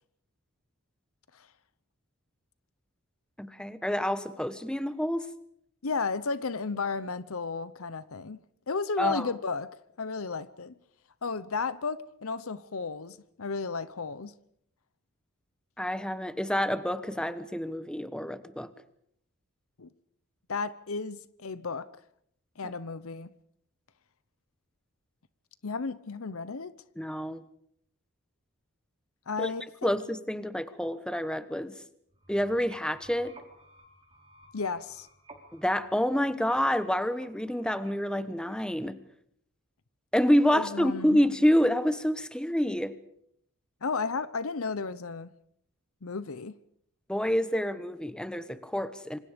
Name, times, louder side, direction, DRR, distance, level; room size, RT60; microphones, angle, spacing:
voice 1, 3.4-5.3 9.0-9.3 15.8-18.7 22.6-22.7 27.0-27.4 29.4-29.5 29.8-31.8 32.3-33.4 35.5-39.0 40.1-43.0 47.1-49.2, equal, 5° left, 1.2 m, -28 dB
voice 2, 5.8-8.4 8.7-9.7 10.0-10.7 11.2-14.3 19.8-19.9 20.5-21.9 22.6-23.3 25.6-26.7 29.3-29.9 34.5-35.1 40.5-41.2 43.8-45.3 46.0-46.5, left 4 dB, 65° left, 0.8 m, -33 dB
sound 1, 32.1-38.9, right 1 dB, 25° right, 4.4 m, -56 dB
27.0 x 26.0 x 5.2 m
head